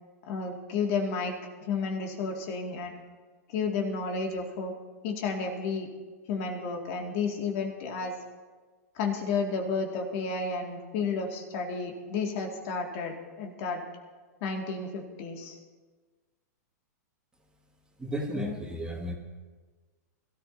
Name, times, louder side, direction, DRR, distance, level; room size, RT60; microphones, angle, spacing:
voice 1, 0.3-1.4 1.6-2.9 3.5-4.7 5.0-5.9 6.3-8.2 8.9-13.8 14.4-15.6 18.3-18.6, left 4 dB, 50° left, 1 dB, 2.3 m, -32 dB
voice 2, 18.0-19.1, right 1 dB, 10° right, -1 dB, 2.1 m, -34 dB
22.5 x 13.5 x 2.8 m, 1.4 s
hypercardioid pair, 115°, 9 cm